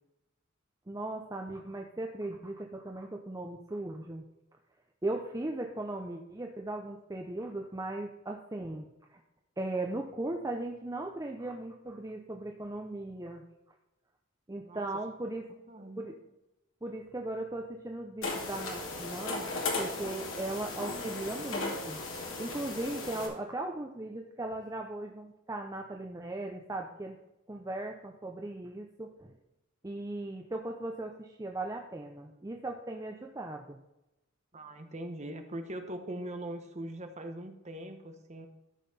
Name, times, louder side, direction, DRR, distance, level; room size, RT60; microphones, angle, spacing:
voice 1, 0.9-4.2 5.0-9.2 9.6-13.4 14.5-15.5 16.0-16.2 16.8-22.1 22.4-27.2 27.5-29.3 29.8-33.8, right 2 dB, 15° right, 2 dB, 0.6 m, -38 dB
voice 2, 15.7-16.0 34.5-38.5, right 1 dB, 35° right, 6 dB, 1.1 m, -41 dB
sound 1, 18.2-23.3, left 3 dB, 80° left, 2.3 m, -36 dB
13.0 x 5.7 x 4.2 m, 0.96 s
head